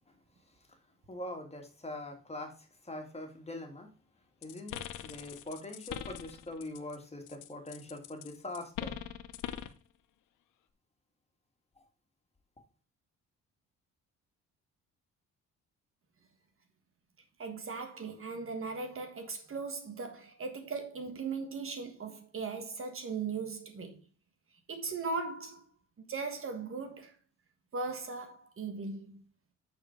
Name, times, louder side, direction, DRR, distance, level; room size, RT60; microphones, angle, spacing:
voice 1, 1.1-2.5 2.9-3.9 4.4-9.0, left 1 dB, 20° left, 2.2 m, -43 dB
sound 1, 4.4-7.0 7.3-9.8, left 11 dB, 85° left, 0.8 m, -42 dB
voice 2, 17.4-24.0 24.7-25.6 26.0-27.1 27.7-29.2, right 4 dB, 45° right, 1.5 m, -38 dB
8.5 x 4.5 x 4.5 m
cardioid pair, 90°, 30 cm